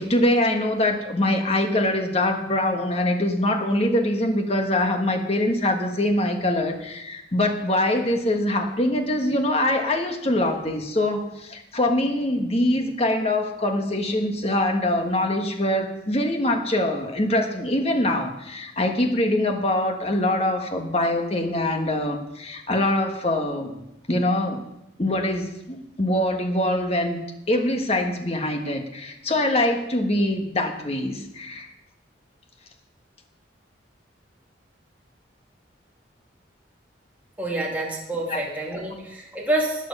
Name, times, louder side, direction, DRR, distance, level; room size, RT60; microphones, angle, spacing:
voice 1, 0.0-23.8 24.1-24.6 25.0-27.2 27.5-31.7 38.3-38.4, left 1 dB, 30° left, 4 dB, 1.5 m, -23 dB
voice 2, 37.4-39.9, right 1 dB, 10° right, -3 dB, 2.1 m, -27 dB
14.5 x 9.3 x 5.5 m, 0.88 s
head